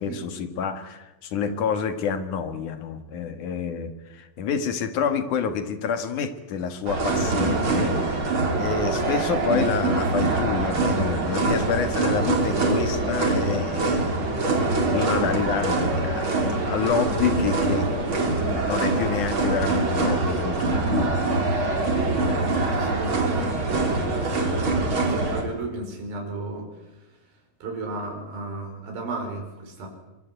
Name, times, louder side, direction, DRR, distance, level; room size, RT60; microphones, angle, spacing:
voice 1, 0.0-14.3 14.9-17.9 18.3-22.1, left 6 dB, 60° left, 9 dB, 3.1 m, -28 dB
sound 1, 6.9-25.4, right 2 dB, 35° right, 4.2 m, -24 dB
voice 2, 14.9-15.3 21.9-22.1 22.7-24.7 24.9-29.9, right 3 dB, 70° right, 2 dB, 7.0 m, -35 dB
24.0 x 24.0 x 9.3 m, 1.0 s
omnidirectional pair, 4.4 m